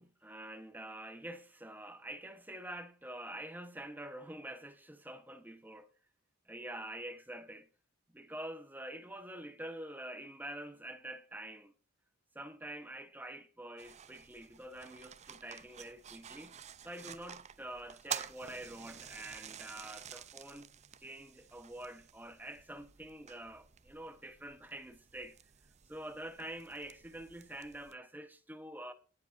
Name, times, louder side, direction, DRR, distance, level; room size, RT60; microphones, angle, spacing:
voice 1, 0.0-5.9 6.5-7.7 8.1-11.7 12.3-16.6 16.8-20.7 21.0-25.4 25.9-28.9, right 1 dB, 10° right, 1.0 m, -46 dB
sound 1, 13.8-27.9, right 8 dB, 30° right, 0.5 m, -49 dB
18.0 x 7.5 x 2.6 m
head